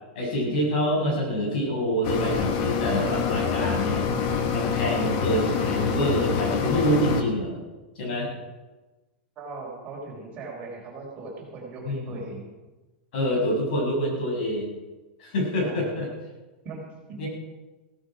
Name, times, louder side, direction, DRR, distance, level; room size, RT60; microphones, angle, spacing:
voice 1, 0.1-4.1 4.5-7.6 7.9-8.3 11.8-12.1 13.1-14.7 15.2-16.1 17.2-17.3, equal, 60° left, -1 dB, 6.8 m, -26 dB
sound 1, 2.0-7.2, left 6 dB, 40° left, 1.7 m, -26 dB
voice 2, 9.3-12.5 15.6-16.0 16.6-17.2, right 3 dB, 25° right, -3 dB, 4.9 m, -39 dB
16.5 x 14.0 x 5.0 m, 1.2 s
supercardioid pair, 165°, 6 cm